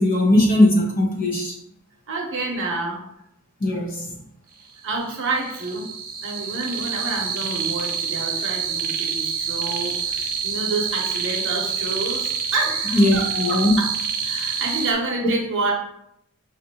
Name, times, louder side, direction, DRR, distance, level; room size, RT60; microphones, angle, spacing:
voice 1, 0.0-1.5 3.6-4.0 12.9-13.8, left 1 dB, 40° left, -2 dB, 0.9 m, -18 dB
voice 2, 2.1-3.0 4.8-5.9 6.2-13.9 14.2-15.7, right 3 dB, 60° right, 0 dB, 0.8 m, -28 dB
sound 1, 4.9-14.9, right 6 dB, 40° right, 0.4 m, -27 dB
5.1 x 2.6 x 2.8 m, 0.77 s
head